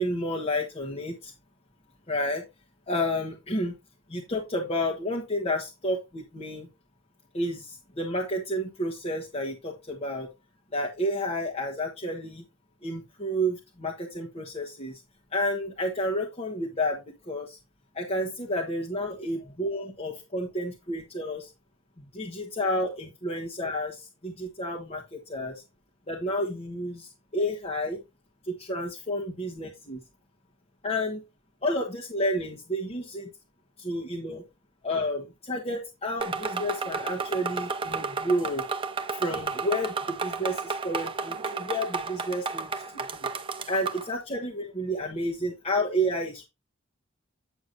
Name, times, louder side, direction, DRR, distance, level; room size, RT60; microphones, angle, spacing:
voice 1, 0.0-1.3 2.1-2.4 2.9-3.7 4.1-6.7 7.3-10.3 10.7-12.4 12.8-15.0 15.3-17.6 17.9-21.5 22.0-25.6 26.1-28.0 28.4-30.0 30.8-31.2 31.6-33.3 33.8-34.4 34.8-38.6 39.1-43.3 43.7-46.4, equal, 30° left, -2 dB, 1.4 m, -30 dB
sound 1, 36.2-44.1, right 4 dB, 25° right, 0.8 m, -32 dB
9.2 x 6.9 x 2.7 m, 0.24 s
head